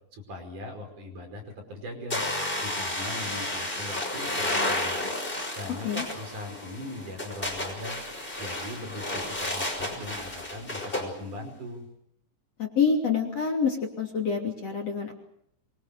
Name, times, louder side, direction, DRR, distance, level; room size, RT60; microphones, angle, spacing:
voice 1, 0.1-1.4 1.7-2.3 2.6-5.0 5.6-8.0 8.4-11.9, left 1 dB, 50° right, 4 dB, 6.6 m, -40 dB
sound 1, 2.1-11.1, left 1 dB, 10° left, 5.8 m, -32 dB
voice 2, 12.6-15.1, left 6 dB, 40° left, 2 dB, 3.5 m, -27 dB
25.0 x 24.0 x 6.8 m, 0.72 s
omnidirectional pair, 4.8 m